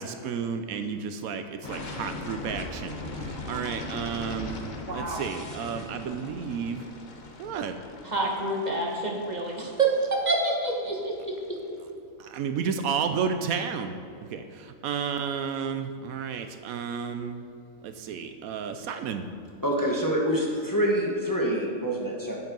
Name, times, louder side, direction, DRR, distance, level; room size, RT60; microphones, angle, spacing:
voice 1, 0.0-4.6 4.9-6.8 7.4-7.8 12.2-14.0 14.2-17.5 17.8-19.3, right 6 dB, 80° right, 8 dB, 1.1 m, -32 dB
sound 1, 1.6-11.4, left 2 dB, 40° left, 0.9 m, -40 dB
voice 2, 4.9-5.2 8.0-11.1, right 3 dB, 30° right, -1 dB, 1.5 m, -27 dB
voice 3, 19.6-22.4, equal, 15° left, -2 dB, 1.2 m, -26 dB
8.3 x 7.8 x 5.3 m, 2.5 s
omnidirectional pair, 1.5 m